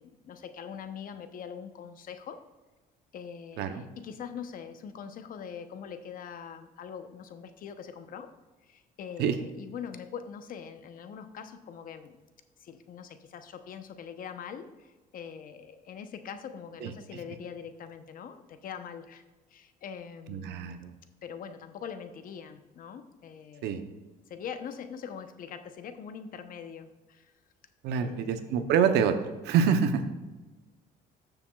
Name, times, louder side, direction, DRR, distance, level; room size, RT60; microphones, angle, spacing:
voice 1, 0.0-2.4 3.1-8.3 8.6-12.2 12.6-19.2 19.5-20.8 21.2-23.8 24.3-27.3 28.0-28.6, left 7 dB, 55° left, 9 dB, 0.8 m, -43 dB
voice 2, 20.3-20.9 23.6-23.9 27.8-29.2 29.4-30.0, right 7 dB, 85° right, 9 dB, 0.8 m, -26 dB
13.0 x 6.9 x 2.4 m, 1.2 s
cardioid pair, 110°, 17 cm